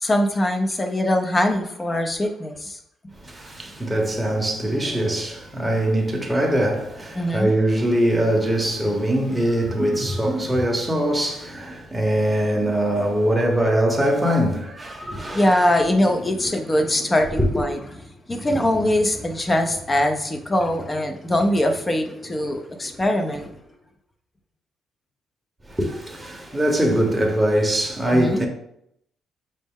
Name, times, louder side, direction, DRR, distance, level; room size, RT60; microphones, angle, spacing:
voice 1, 0.0-2.8 7.1-7.5 15.3-17.8 18.3-23.5 28.1-28.4, left 1 dB, 20° left, 0.5 m, -22 dB
voice 2, 3.2-15.5 15.7-15.9 17.4-17.5 25.7-28.5, right 1 dB, 10° right, 0.8 m, -22 dB
5.2 x 2.0 x 3.6 m
cardioid pair, 90°, 0 cm